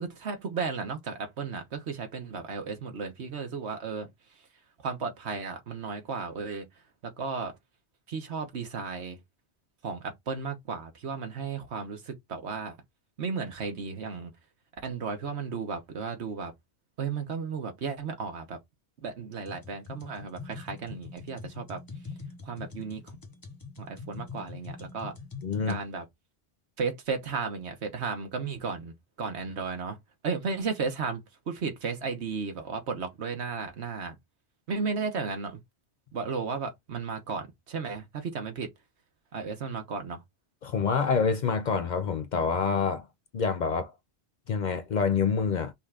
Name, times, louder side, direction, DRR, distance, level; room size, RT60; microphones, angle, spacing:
voice 1, 0.0-4.1 4.8-6.7 7.0-7.5 8.1-9.2 9.8-12.8 13.2-14.3 14.8-16.5 17.0-18.6 19.0-21.8 22.4-23.1 23.8-25.1 25.7-26.0 26.8-28.9 29.2-30.0 30.2-34.2 34.7-35.6 36.1-38.7 39.3-40.2, right 5 dB, 85° right, 1.4 m, -34 dB
sound 1, 19.5-25.8, left 4 dB, 20° left, 0.7 m, -43 dB
voice 2, 25.4-25.8 40.6-43.1 43.3-43.9 44.5-45.7, left 5 dB, 55° left, 0.5 m, -27 dB
5.5 x 2.5 x 3.4 m
omnidirectional pair, 1.1 m